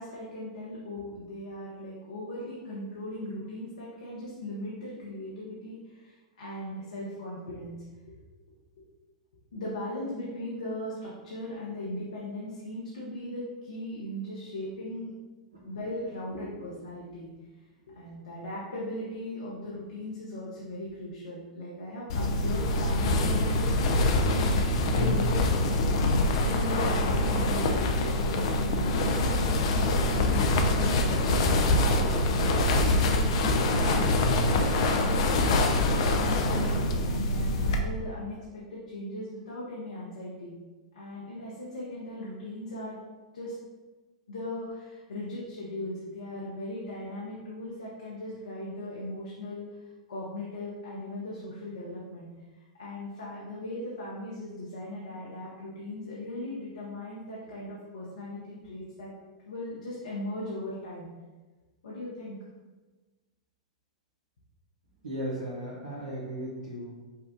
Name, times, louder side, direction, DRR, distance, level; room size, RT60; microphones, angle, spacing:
voice 1, 0.0-7.8 9.5-15.1 15.6-17.3 17.9-24.6 24.9-25.6 26.4-28.6 29.0-35.3 35.7-40.5 40.9-43.0 43.3-43.6 44.3-49.8 50.1-52.3 52.8-59.1 59.4-61.1 61.8-62.4, left 1 dB, 75° left, -6 dB, 1.0 m, -38 dB
sound 1, 22.1-37.8, left 2 dB, 60° left, 0.5 m, -25 dB
voice 2, 65.0-66.9, right 1 dB, 85° right, -8 dB, 1.2 m, -36 dB
5.7 x 2.4 x 3.7 m, 1.3 s
figure-of-eight pair, 100°, 4 cm